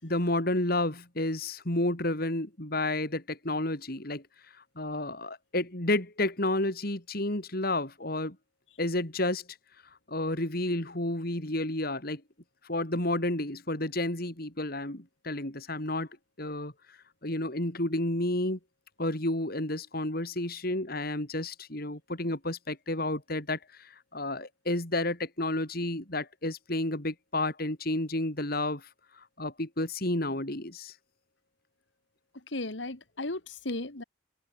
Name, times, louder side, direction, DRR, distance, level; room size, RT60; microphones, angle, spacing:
voice 1, 0.0-4.2 4.8-8.4 8.8-9.4 10.1-12.2 12.6-16.1 16.4-16.7 17.2-18.6 19.0-28.9 29.2-30.9, left 1 dB, 55° left, 3.9 m, -31 dB
voice 2, 32.5-34.0, left 2 dB, 75° left, 2.2 m, -35 dB
open air
head